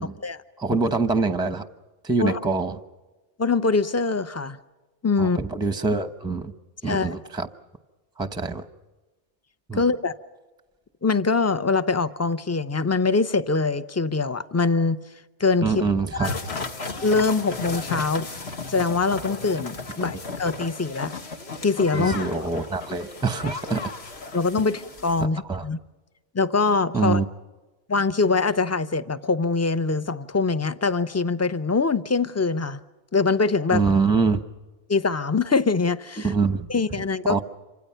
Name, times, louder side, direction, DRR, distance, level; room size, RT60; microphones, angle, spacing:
voice 1, 0.6-1.6 2.0-2.8 5.2-6.5 6.8-7.5 8.2-8.6 9.7-9.8 15.6-16.3 21.9-23.9 25.5-25.6 26.9-27.3 33.7-34.4 36.2-36.7 37.3-37.4, right 4 dB, 5° right, 0.8 m, -24 dB
voice 2, 3.4-4.6 5.0-5.4 6.8-7.2 9.7-10.2 11.0-15.0 15.4-15.8 16.1-16.3 17.0-18.3 18.7-21.1 21.6-22.5 24.3-25.8 26.3-27.2 27.9-32.8 33.1-33.8 34.9-36.3 36.7-37.4, left 4 dB, 20° left, 0.5 m, -23 dB
sound 1, 16.2-25.2, left 3 dB, 65° left, 1.9 m, -34 dB
27.5 x 25.5 x 5.7 m
omnidirectional pair, 1.2 m